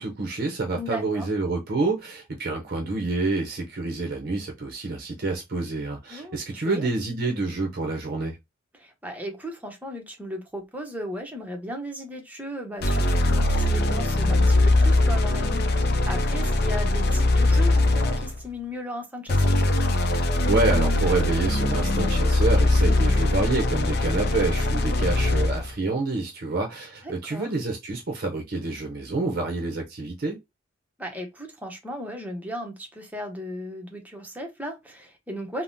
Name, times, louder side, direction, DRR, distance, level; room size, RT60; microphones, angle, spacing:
voice 1, 0.0-8.4 20.5-30.4, right 3 dB, 50° right, 0.6 m, -28 dB
voice 2, 0.7-1.3 6.1-6.4 6.6-6.9 8.7-19.6 22.8-23.4 27.0-27.5 31.0-35.6, equal, 10° right, 0.7 m, -36 dB
sound 1, 12.8-18.4 19.3-25.7, left 2 dB, 55° left, 0.5 m, -21 dB
3.4 x 2.0 x 2.6 m
head